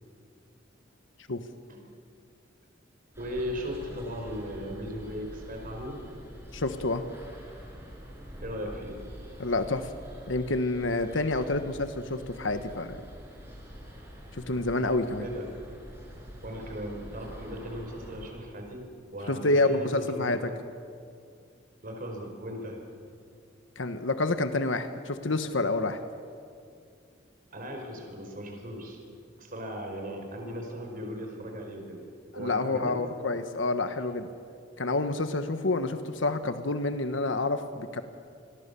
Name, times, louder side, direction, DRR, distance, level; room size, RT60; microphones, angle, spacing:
sound 1, 3.1-18.3, equal, 15° right, 5.6 m, -46 dB
voice 1, 3.2-6.0 8.4-9.0 15.2-15.5 16.4-20.4 21.8-22.8 27.5-29.0 29.4-32.0 32.3-33.0, equal, 50° right, 2 dB, 5.0 m, -37 dB
voice 2, 6.5-7.0 9.4-9.9 10.3-13.0 14.3-15.2 19.3-20.5 23.8-26.0 32.3-34.3 34.8-38.0, left 2 dB, 80° left, 9 dB, 1.3 m, -28 dB
28.0 x 21.5 x 6.9 m, 2.3 s
head